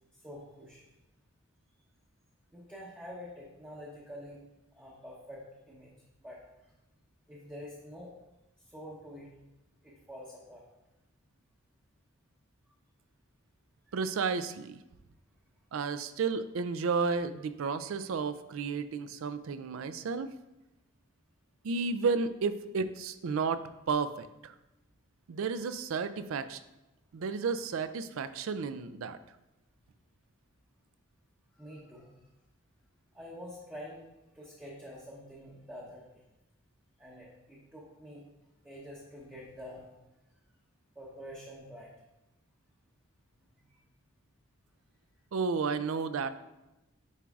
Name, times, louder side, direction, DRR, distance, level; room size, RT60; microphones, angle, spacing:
voice 1, 0.2-0.8 2.5-4.4 4.8-5.9 6.2-6.4 7.3-8.1 8.7-9.3 9.8-10.6 31.5-32.1 33.1-34.1 34.3-36.2 37.0-38.2 38.6-39.9 41.0-41.9 43.7-43.8, equal, 10° right, -6 dB, 0.8 m, -47 dB
voice 2, 13.9-14.8 15.7-20.3 21.6-24.5 25.3-26.6 27.1-29.2 45.3-46.3, right 5 dB, 70° right, 12 dB, 0.4 m, -32 dB
9.9 x 4.6 x 2.4 m, 0.98 s
head